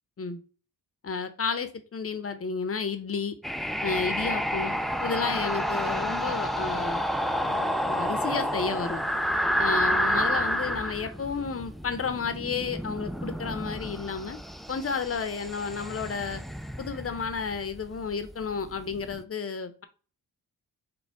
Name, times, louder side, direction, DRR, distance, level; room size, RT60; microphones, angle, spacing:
voice 1, 1.0-3.3 3.8-4.8 5.0-7.0 7.4-9.0 9.6-14.4 14.7-16.4 16.8-19.8, left 5 dB, 35° left, 10 dB, 0.8 m, -32 dB
sound 1, 3.4-19.2, equal, ahead, 0.3 m, -30 dB
4.4 x 2.3 x 4.7 m, 0.37 s
cardioid pair, 65°, 38 cm